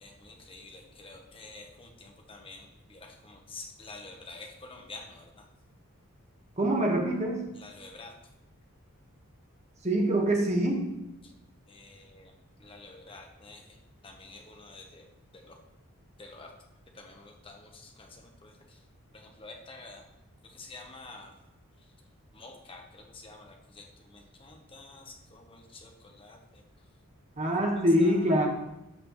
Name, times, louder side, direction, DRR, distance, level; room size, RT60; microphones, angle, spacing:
voice 1, 0.0-2.6 2.9-5.2 7.6-8.1 11.7-12.3 12.6-13.6 14.0-15.0 16.2-16.5 17.0-18.1 18.4-18.5 19.4-20.0 20.5-21.3 22.3-23.8 24.1-25.0 25.3-25.9 26.2-26.4 28.0-28.1, left 3 dB, 25° left, 2 dB, 1.0 m, -48 dB
voice 2, 6.6-7.4 9.8-10.8 27.4-28.5, right 1 dB, 30° right, 1 dB, 1.3 m, -24 dB
13.0 x 5.9 x 3.1 m, 0.92 s
head